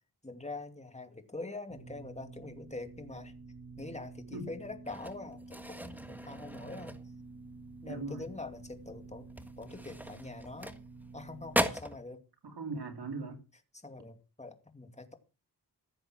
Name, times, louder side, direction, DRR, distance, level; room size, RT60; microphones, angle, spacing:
voice 1, 0.2-3.3 3.8-7.0 7.8-9.3 9.6-10.8 11.1-12.2 13.7-15.1, left 2 dB, 15° left, 2.5 m, -44 dB
sound 1, 1.7-11.7, right 3 dB, 55° right, 2.9 m, -50 dB
sound 2, 4.9-7.5 7.8-8.1 8.5-8.6 9.2-11.2 11.5-12.0, equal, 5° right, 1.5 m, -37 dB
voice 2, 7.8-8.3 12.4-13.4, right 3 dB, 85° right, 2.7 m, -39 dB
15.5 x 7.8 x 5.9 m
wide cardioid pair, 70°, 38 cm